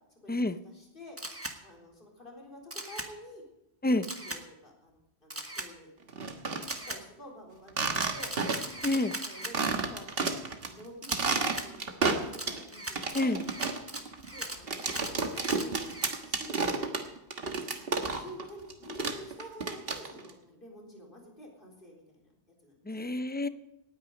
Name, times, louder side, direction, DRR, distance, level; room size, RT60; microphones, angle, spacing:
voice 1, 0.2-1.2 1.6-3.4 3.8-6.1 6.9-8.4 9.2-13.5 14.3-17.4 17.9-22.3 22.6-23.1, equal, 55° left, -1 dB, 4.2 m, -49 dB
Camera, 1.2-1.6 2.7-3.1 4.0-4.4 5.3-5.7 6.6-7.0 7.9-9.5 11.0-11.7 12.3-16.2, right 1 dB, 15° right, 1.3 m, -39 dB
sound 1, 6.1-6.8 7.7-8.8 9.1-9.2 9.5-10.7 11.0-12.6 13.0-18.4 18.7-20.3, right 4 dB, 65° right, 1.6 m, -31 dB
voice 2, 8.8-9.2 13.1-13.4 22.9-23.5, left 2 dB, 15° left, 11 dB, 0.4 m, -28 dB
18.5 x 9.5 x 5.3 m, 0.89 s
omnidirectional pair, 1.1 m